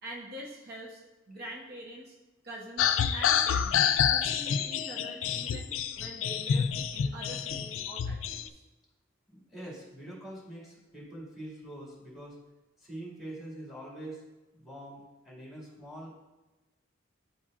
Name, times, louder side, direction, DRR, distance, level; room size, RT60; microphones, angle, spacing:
voice 1, 0.0-2.1 2.4-3.8 4.1-8.6, equal, 55° right, -3 dB, 0.9 m, -44 dB
sound 1, 2.8-8.5, left 8 dB, 80° left, 0.4 m, -28 dB
voice 2, 9.3-12.4 12.8-14.2 14.5-16.1, right 1 dB, ahead, -7 dB, 2.1 m, -44 dB
10.5 x 4.3 x 2.5 m, 1.1 s
head